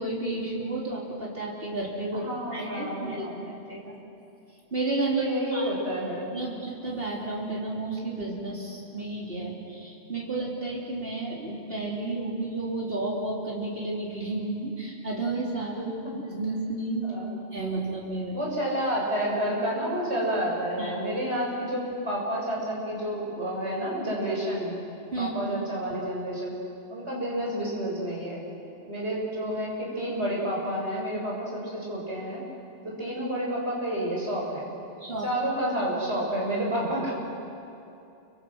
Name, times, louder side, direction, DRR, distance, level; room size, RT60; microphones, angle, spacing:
voice 1, 0.0-3.3 3.7-4.0 4.7-5.3 5.5-5.7 6.3-15.9 16.3-17.0 17.5-18.3 20.8-21.0 25.1-25.3 35.0-35.3, right 2 dB, 60° right, -4 dB, 3.9 m, -32 dB
voice 2, 2.1-3.4 5.2-6.3 17.0-17.4 18.3-24.8 25.2-26.6 26.9-28.4 28.9-32.4 32.8-34.7 35.2-37.1, equal, 80° right, -4 dB, 7.2 m, -30 dB
29.5 x 24.5 x 6.4 m, 2.7 s
omnidirectional pair, 1.1 m